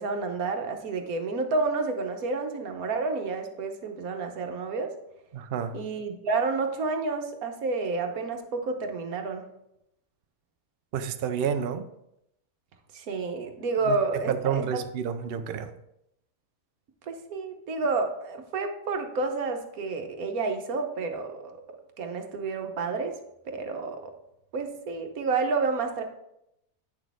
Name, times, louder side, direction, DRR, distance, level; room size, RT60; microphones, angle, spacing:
voice 1, 0.0-4.9 5.7-9.4 12.9-14.8 17.1-21.6 22.0-23.2 23.5-24.1 24.5-26.0, right 4 dB, 65° right, 5 dB, 1.4 m, -30 dB
voice 2, 5.3-5.8 10.9-11.8 13.9-14.0 14.3-15.7, right 7 dB, 90° right, 8 dB, 0.5 m, -29 dB
9.0 x 6.2 x 3.5 m, 0.81 s
omnidirectional pair, 1.7 m